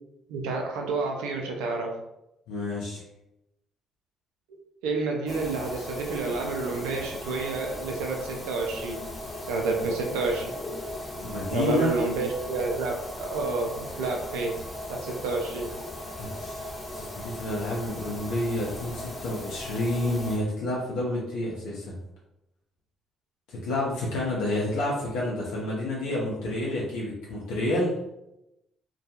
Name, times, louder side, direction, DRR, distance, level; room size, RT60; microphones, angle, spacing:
voice 1, 0.3-2.0 4.8-9.0 9.5-10.5 11.5-14.6 14.9-15.7, right 3 dB, 85° right, 1 dB, 0.5 m, -29 dB
voice 2, 2.5-3.0 11.2-11.9 16.2-22.0 23.5-27.9, left 1 dB, 80° left, -5 dB, 0.6 m, -29 dB
sound 1, 5.3-20.4, left 1 dB, 25° left, 0.8 m, -38 dB
2.3 x 2.2 x 2.8 m, 0.87 s
hypercardioid pair, 55°, 0 cm